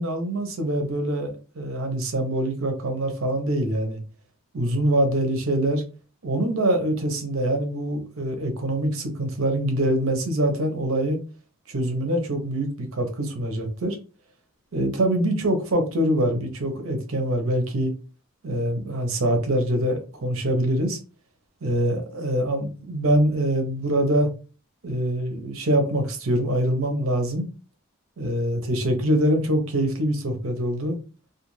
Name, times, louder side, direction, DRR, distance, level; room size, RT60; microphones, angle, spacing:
voice 1, 0.0-4.0 4.5-5.8 6.2-11.2 11.7-14.0 14.7-17.9 18.4-21.0 21.6-24.3 24.8-27.5 28.2-31.0, right 1 dB, 70° right, 5 dB, 0.7 m, -24 dB
2.4 x 2.3 x 3.1 m, 0.35 s
head